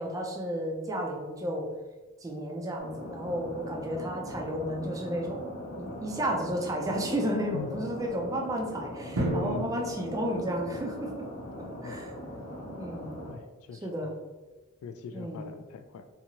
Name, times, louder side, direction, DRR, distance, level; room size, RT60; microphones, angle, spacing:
voice 1, 0.0-1.7 2.2-5.4 5.8-11.3 11.6-12.1 12.8-13.2 13.8-14.1 15.1-15.4, equal, 15° right, 0 dB, 0.4 m, -32 dB
sound 1, 2.8-13.3, equal, 50° left, 0.6 m, -41 dB
voice 2, 7.5-7.9 9.4-9.7 11.8-12.4 13.3-14.1 14.8-16.1, left 4 dB, 90° left, 13 dB, 0.3 m, -41 dB
Drum, 9.2-11.1, right 1 dB, 70° right, 0.6 m, -33 dB
2.7 x 2.4 x 2.8 m, 1.2 s
head